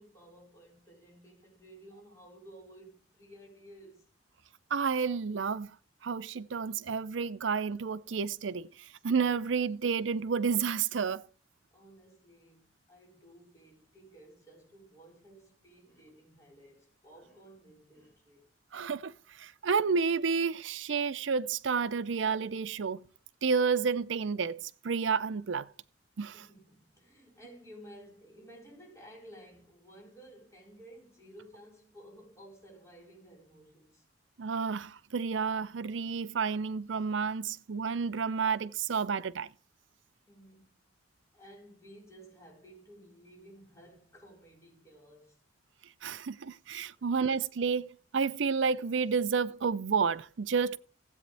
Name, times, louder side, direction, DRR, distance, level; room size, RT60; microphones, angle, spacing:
voice 1, 0.0-4.1 11.7-18.4 26.3-34.1 40.3-40.9 41.3-45.4 47.0-47.3, right 1 dB, 15° left, 4.6 m, -54 dB
voice 2, 4.7-5.7 6.0-8.7 9.0-11.2 18.7-23.0 23.4-25.7 26.2-26.4 34.4-39.5 46.0-50.8, right 5 dB, 80° right, 0.5 m, -30 dB
16.0 x 8.4 x 3.4 m
head